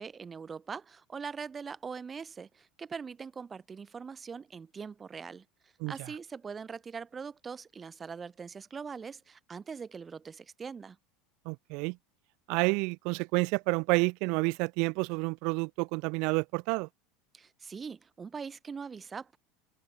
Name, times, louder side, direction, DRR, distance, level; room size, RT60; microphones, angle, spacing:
voice 1, 0.0-11.0 17.3-19.4, right 5 dB, 25° right, 5.3 m, -42 dB
voice 2, 11.5-12.0 12.5-16.9, right 30 dB, 60° right, 0.6 m, -29 dB
hypercardioid pair, 75°, 0 cm